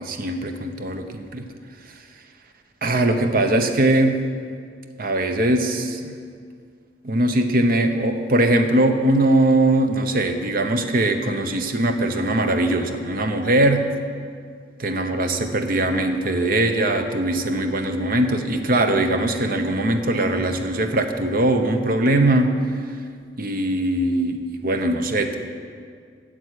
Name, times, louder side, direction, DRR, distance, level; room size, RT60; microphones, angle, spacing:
voice 1, 0.0-1.5 2.8-4.2 5.0-6.1 7.0-13.9 14.8-22.6 23.4-25.4, right 1 dB, 55° right, 6 dB, 0.9 m, -21 dB
9.1 x 7.6 x 8.3 m, 2.1 s
head